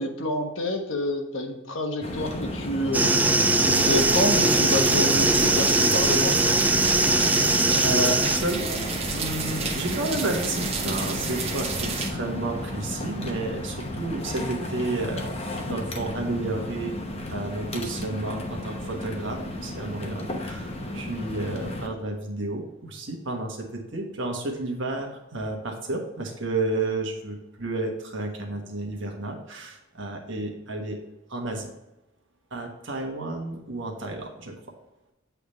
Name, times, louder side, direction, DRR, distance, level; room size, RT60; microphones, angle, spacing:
voice 1, 0.0-3.1 3.6-6.4, left 1 dB, 75° left, 4 dB, 1.1 m, -28 dB
sound 1, 2.0-21.9, left 1 dB, 30° left, 0.8 m, -33 dB
sound 2, 2.9-8.4, right 2 dB, 10° right, 0.3 m, -21 dB
sound 3, 3.7-12.1, right 4 dB, 30° right, 0.9 m, -31 dB
voice 2, 7.2-8.8 9.1-15.2 15.6-17.0 17.3-31.0 31.3-31.7 32.5-34.5, right 2 dB, 65° right, 2 dB, 1.4 m, -31 dB
8.3 x 3.4 x 4.1 m, 0.93 s
head